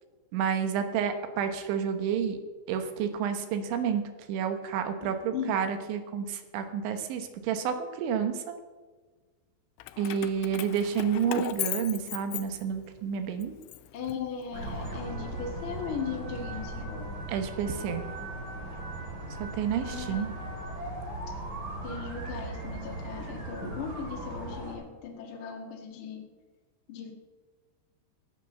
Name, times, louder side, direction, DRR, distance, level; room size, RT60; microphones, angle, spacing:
voice 1, 0.3-2.4 2.7-4.0 4.3-8.4 10.0-13.6 17.3-18.1 19.4-20.3, right 7 dB, 75° right, 7 dB, 3.4 m, -30 dB
voice 2, 5.0-5.6 13.9-17.3 19.8-20.3 21.8-26.3 26.9-27.1, left 6 dB, 70° left, 1 dB, 1.2 m, -38 dB
Keys jangling, 9.8-13.0 13.4-14.7, left 17 dB, 85° left, 3.2 m, -37 dB
sound 1, 14.5-24.7, right 1 dB, 30° right, 2.4 m, -38 dB
16.0 x 9.2 x 6.7 m, 1.4 s
omnidirectional pair, 5.7 m